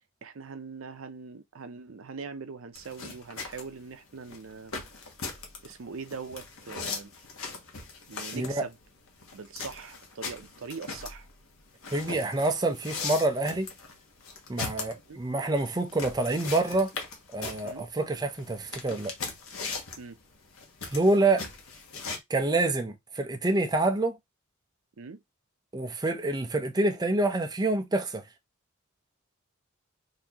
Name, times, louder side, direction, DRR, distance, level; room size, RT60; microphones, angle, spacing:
voice 1, 0.2-4.7 5.6-7.1 8.1-8.8 9.3-11.3 15.1-15.2 17.6-17.9 20.0-20.2 25.0-25.2, right 5 dB, 70° right, 0.6 m, -42 dB
sound 1, 2.8-22.2, left 4 dB, 80° left, 1.0 m, -39 dB
voice 2, 8.3-8.6 11.9-13.7 14.5-16.9 17.3-19.1 20.9-21.4 22.3-24.2 25.7-28.2, right 2 dB, 20° right, 0.5 m, -27 dB
4.0 x 2.7 x 2.8 m
head